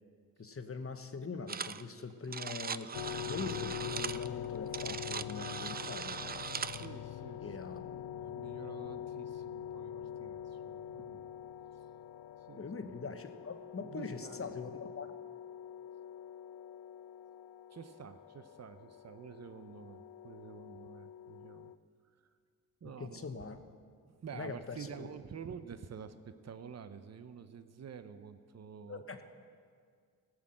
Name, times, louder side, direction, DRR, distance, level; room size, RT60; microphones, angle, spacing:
voice 1, 0.4-2.9 3.2-6.2 7.4-8.0 12.6-15.1 23.0-23.6 24.3-25.1 28.9-29.2, left 4 dB, 40° left, 8 dB, 1.0 m, -43 dB
sound 1, 1.5-1.8 2.1-6.9, right 6 dB, 30° right, 0.3 m, -40 dB
sound 2, 2.9-21.8, left 10 dB, 70° left, 0.5 m, -44 dB
voice 2, 6.6-11.3 12.5-12.7 13.8-14.7 17.7-21.7 22.8-23.3 24.0-26.2 26.4-29.0, right 7 dB, 50° right, 11 dB, 0.7 m, -49 dB
16.0 x 6.2 x 7.6 m, 2.1 s
cardioid pair, 60°, 35 cm